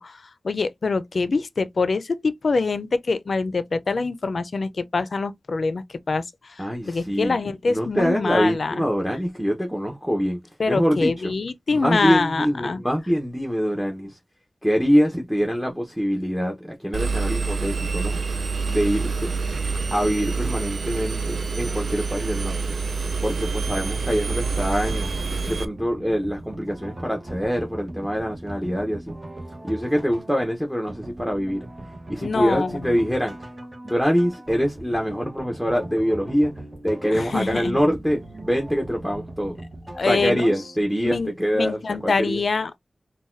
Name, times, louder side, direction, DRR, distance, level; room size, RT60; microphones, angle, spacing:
voice 1, 0.0-6.2 6.6-8.8 10.6-12.8 32.2-33.1 37.1-37.8 39.9-40.5 41.0-42.8, left 4 dB, 75° left, 0.4 m, -25 dB
voice 2, 6.6-7.4 7.7-10.4 10.7-11.3 11.8-14.2 14.6-18.2 18.7-19.4 19.9-22.8 23.2-25.1 25.5-29.2 29.6-31.7 32.1-33.4 33.8-36.5 36.8-39.6 40.0-42.4, equal, ahead, 0.8 m, -24 dB
Engine, 16.9-25.7, right 4 dB, 85° right, 0.4 m, -27 dB
sound 1, 23.6-40.9, right 1 dB, 35° right, 1.0 m, -39 dB
3.9 x 2.2 x 2.5 m
wide cardioid pair, 60°, 0 cm